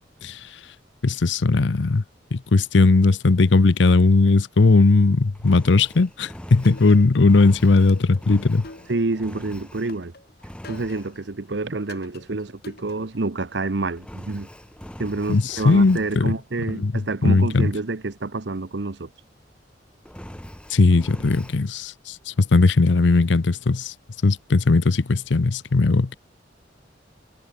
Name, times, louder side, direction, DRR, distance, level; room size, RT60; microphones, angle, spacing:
voice 1, 0.2-0.5 1.0-2.0 2.3-8.7 15.3-16.3 16.7-17.7 20.7-23.9 24.2-26.2, left 3 dB, 80° left, 0.7 m, -18 dB
Engine, 5.3-10.1 10.4-11.1 14.0-16.2 20.0-21.6, equal, 5° left, 1.0 m, -42 dB
sound 1, 6.6-7.4 7.9-9.3 9.9-11.3 11.9-13.3, left 2 dB, 60° left, 4.4 m, -45 dB
voice 2, 8.9-10.1 10.7-14.5 15.0-19.1, right 3 dB, 70° right, 0.9 m, -28 dB
head